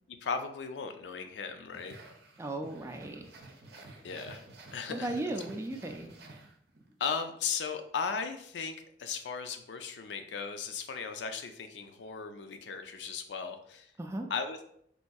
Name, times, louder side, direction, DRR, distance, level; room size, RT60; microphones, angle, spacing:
voice 1, 0.2-2.0 4.0-4.4 4.7-5.1 7.0-13.9 14.3-14.6, left 5 dB, 85° left, 7 dB, 0.4 m, -36 dB
sound 1, 1.7-6.9, right 2 dB, 65° right, 0.6 m, -52 dB
voice 2, 2.4-3.2 4.9-6.1 14.0-14.3, right 2 dB, 15° right, 4 dB, 0.3 m, -36 dB
4.1 x 2.6 x 2.3 m, 0.68 s
head